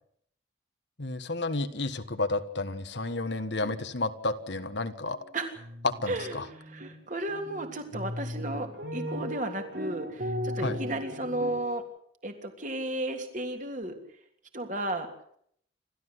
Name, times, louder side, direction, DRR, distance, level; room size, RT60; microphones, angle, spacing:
voice 1, 1.0-5.2 5.8-6.4 10.6-10.8, left 2 dB, 65° left, 9 dB, 1.5 m, -31 dB
sound 1, 5.1-5.3 5.6-6.9 7.3-11.8, equal, 60° right, 3.4 m, -37 dB
voice 2, 6.1-11.8 12.2-14.0 14.5-15.1, right 1 dB, 40° right, 5 dB, 3.2 m, -34 dB
28.5 x 13.5 x 8.0 m, 0.67 s
head